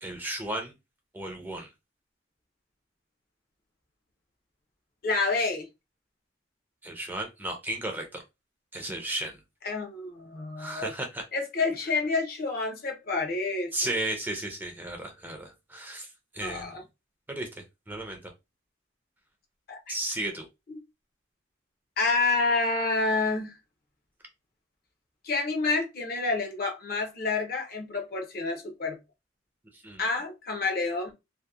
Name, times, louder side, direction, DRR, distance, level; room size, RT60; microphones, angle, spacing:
voice 1, 0.0-0.7 1.1-1.7 6.8-8.2 8.7-9.4 10.6-11.2 13.7-16.1 16.3-16.8 17.3-18.3 19.9-20.5 29.8-30.0, right 1 dB, 10° right, 0.4 m, -34 dB
voice 2, 5.0-5.7 9.6-10.9 11.3-14.0 16.4-16.8 19.7-20.0 20.7-20.8 22.0-23.5 25.2-29.0 30.0-31.1, left 3 dB, 50° left, 0.6 m, -28 dB
2.7 x 2.0 x 2.2 m
head